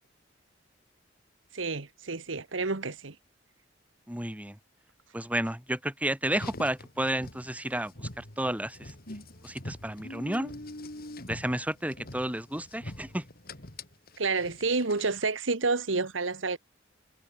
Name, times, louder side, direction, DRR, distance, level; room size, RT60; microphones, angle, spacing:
voice 1, 1.5-3.1 14.2-16.6, right 3 dB, 85° right, 1.5 m, -29 dB
voice 2, 4.1-4.6 5.1-8.9 9.4-10.5 11.3-13.2, right 1 dB, 10° right, 4.6 m, -32 dB
Car, 6.3-15.3, left 1 dB, 50° left, 3.5 m, -44 dB
head